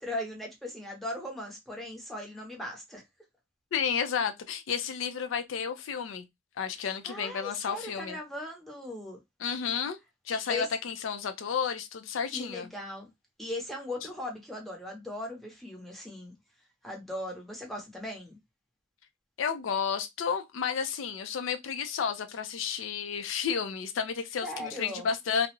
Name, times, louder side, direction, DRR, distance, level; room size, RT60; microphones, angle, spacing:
voice 1, 0.0-3.0 7.1-9.2 10.5-10.7 12.3-13.1 13.4-16.3 16.8-18.4 24.4-25.1, left 1 dB, ahead, 0.7 m, -38 dB
voice 2, 3.7-6.2 6.6-8.2 9.4-10.0 10.3-12.7 19.4-25.5, left 6 dB, 75° left, 0.4 m, -31 dB
2.3 x 2.0 x 2.9 m
head